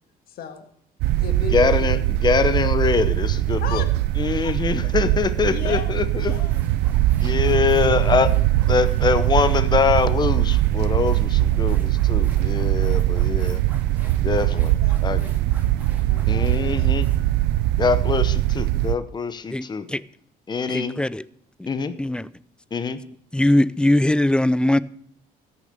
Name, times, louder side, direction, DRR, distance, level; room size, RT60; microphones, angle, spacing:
voice 1, 0.3-0.6 1.2-1.9 3.6-3.9 4.4-4.5 5.5-6.6 7.4-7.9 12.8-12.9 14.0-15.4 15.8-16.9 17.9-18.1, left 7 dB, 65° left, 1.7 m, -36 dB
sound 1, 1.0-19.0, right 15 dB, 90° right, 0.4 m, -21 dB
voice 2, 1.5-3.9 4.2-6.4 7.2-8.3 8.7-13.6 14.2-14.7 15.0-15.2 16.3-17.1 17.8-19.9 20.5-21.0 21.7-22.0 22.7-23.0, left 5 dB, 25° left, 0.8 m, -23 dB
sound 2, 6.3-18.5, right 1 dB, 10° right, 2.2 m, -49 dB
voice 3, 20.7-21.2 21.6-21.7 22.0-22.3 23.3-24.8, left 1 dB, 5° left, 0.4 m, -20 dB
14.0 x 6.8 x 6.6 m
cardioid pair, 110°, 17 cm